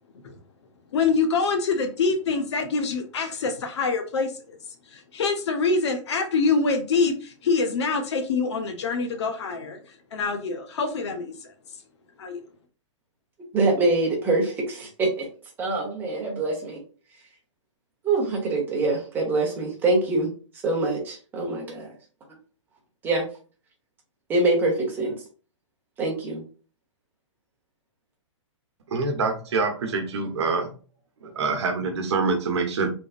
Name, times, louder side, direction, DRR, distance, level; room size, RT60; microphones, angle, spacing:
voice 1, 0.9-4.6 4.9-9.8 10.1-11.5 12.2-12.4, left 4 dB, 60° left, 7 dB, 0.9 m, -25 dB
voice 2, 13.5-15.3 15.6-16.8 18.0-20.3 20.6-21.9 23.0-23.2 24.3-25.1 26.0-26.4, right 2 dB, 10° right, 0 dB, 1.0 m, -24 dB
voice 3, 28.9-30.7 31.2-32.9, right 4 dB, 60° right, 5 dB, 1.0 m, -25 dB
4.0 x 3.5 x 2.4 m, 0.37 s
hypercardioid pair, 160°, 16 cm